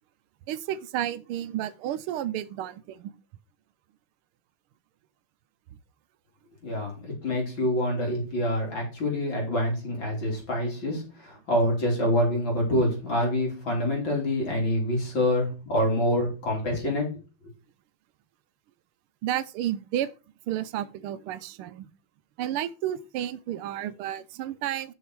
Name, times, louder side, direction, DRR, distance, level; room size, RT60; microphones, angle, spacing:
voice 1, 0.5-3.1 19.2-20.1 20.5-21.9 22.4-24.9, right 12 dB, 85° right, 1.5 m, -31 dB
voice 2, 6.6-17.0, left 1 dB, 60° left, 4.1 m, -26 dB
9.0 x 6.5 x 4.7 m
omnidirectional pair, 2.4 m